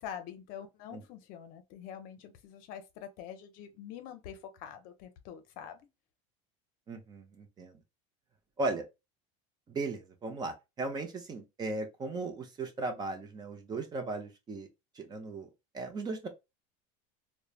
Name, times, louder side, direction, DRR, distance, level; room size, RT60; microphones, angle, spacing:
voice 1, 0.0-5.8, left 9 dB, 55° left, 0.6 m, -45 dB
voice 2, 6.9-7.7 8.6-8.8 9.7-14.7 15.0-15.5 15.7-16.3, right 3 dB, 25° right, 0.6 m, -37 dB
3.1 x 2.1 x 2.4 m
supercardioid pair, 135°, 17 cm